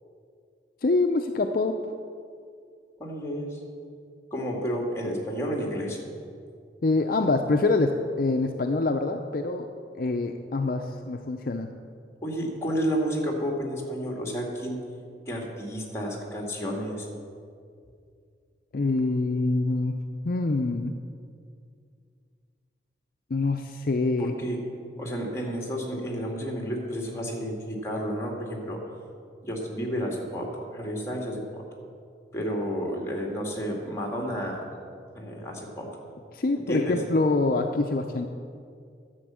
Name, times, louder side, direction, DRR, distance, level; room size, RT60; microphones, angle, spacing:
voice 1, 0.8-1.8 6.8-9.7 9.9-11.7 18.7-20.0 20.2-21.0 23.3-24.3 36.3-38.3, left 3 dB, 55° left, 5 dB, 0.5 m, -25 dB
voice 2, 3.0-3.6 4.3-6.0 12.2-14.8 15.3-17.1 24.2-24.6 25.0-28.8 29.4-31.6 32.3-34.6 35.1-35.9 36.5-37.0, equal, 15° left, 0 dB, 1.9 m, -31 dB
11.5 x 7.1 x 7.5 m, 2.3 s
head